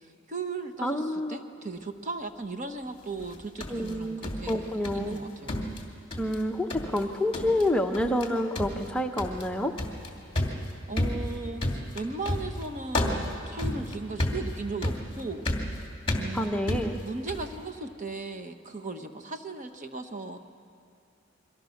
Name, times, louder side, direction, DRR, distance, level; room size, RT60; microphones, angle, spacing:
voice 1, 0.0-5.7 10.9-15.4 16.1-16.6 17.0-20.4, right 3 dB, 40° right, 7 dB, 1.2 m, -37 dB
voice 2, 0.8-1.4 3.7-5.2 6.2-9.7 16.3-17.0, left 1 dB, 5° left, 3 dB, 0.9 m, -28 dB
sound 1, 3.2-5.2 5.5-6.4 6.7-7.0 7.3-7.7 7.9-8.3 8.5-17.5, left 1 dB, 25° left, 2.6 m, -32 dB
28.0 x 23.5 x 6.5 m, 2.5 s
head